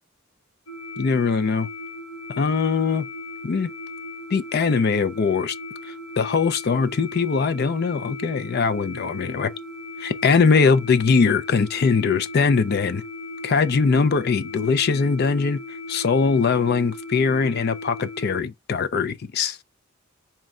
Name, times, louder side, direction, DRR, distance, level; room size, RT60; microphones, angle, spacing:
sound 1, 0.7-18.4, left 1 dB, 70° left, 0.9 m, -37 dB
voice 1, 1.0-1.7 2.4-3.1 3.4-3.7 4.3-5.5 6.2-9.5 10.0-13.0 13.4-15.6 15.9-19.6, left 5 dB, 50° left, 0.4 m, -21 dB
4.3 x 2.1 x 3.6 m
head